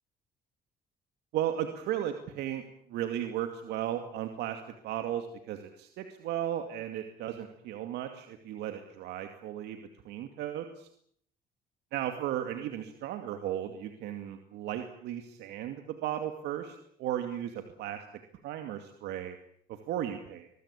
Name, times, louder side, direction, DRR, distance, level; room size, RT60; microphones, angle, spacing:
voice 1, 1.3-2.6 2.9-9.8 10.0-10.9 11.9-18.0 18.4-19.4 19.7-20.5, right 11 dB, 80° right, 6 dB, 2.4 m, -35 dB
24.5 x 21.0 x 8.4 m, 0.67 s
cardioid pair, 110°, 17 cm